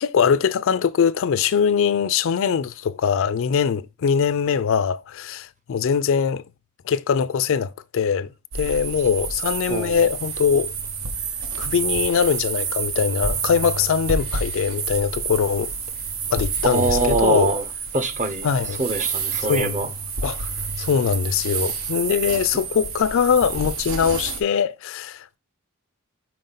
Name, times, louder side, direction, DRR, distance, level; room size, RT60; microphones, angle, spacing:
voice 1, 0.0-6.4 6.9-10.7 11.6-15.7 16.3-17.5 18.4-18.8 19.5-19.8 20.2-20.5 20.8-25.4, left 7 dB, 65° left, 0.4 m, -22 dB
sound 1, 8.5-24.4, right 5 dB, 70° right, 0.8 m, -29 dB
voice 2, 9.7-10.0 16.6-17.6 17.9-18.5 18.8-19.9, right 2 dB, 35° right, 0.8 m, -23 dB
5.2 x 4.6 x 3.9 m
head